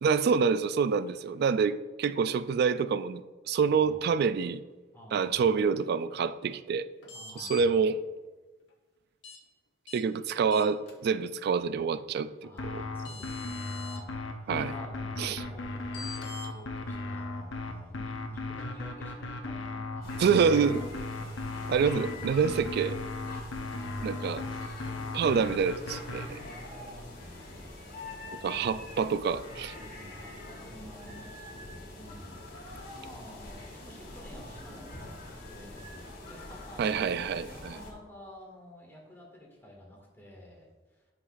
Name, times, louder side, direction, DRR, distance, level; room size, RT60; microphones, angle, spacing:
voice 1, 0.0-4.6 5.1-6.9 7.4-8.0 9.9-12.8 14.5-14.7 15.2-15.4 20.2-20.8 21.7-23.0 24.0-24.4 25.1-26.2 28.4-29.7 36.8-37.8, right 6 dB, 55° right, 0.3 m, -27 dB
voice 2, 3.6-4.1 4.9-5.5 7.1-7.9 12.4-20.3 20.6-20.7 24.0-24.2 24.7-25.6 26.1-28.7 29.7-40.7, left 1 dB, 10° left, 2.0 m, -50 dB
sound 1, 7.0-7.6 9.2-9.4 9.9-10.0 10.5-10.9 12.6-12.7 13.0-14.0 15.9-16.5, left 4 dB, 70° left, 1.3 m, -44 dB
sound 2, 12.6-26.3, left 2 dB, 85° left, 0.9 m, -36 dB
sound 3, 20.0-37.9, left 2 dB, 50° left, 2.2 m, -45 dB
11.0 x 6.0 x 2.6 m
head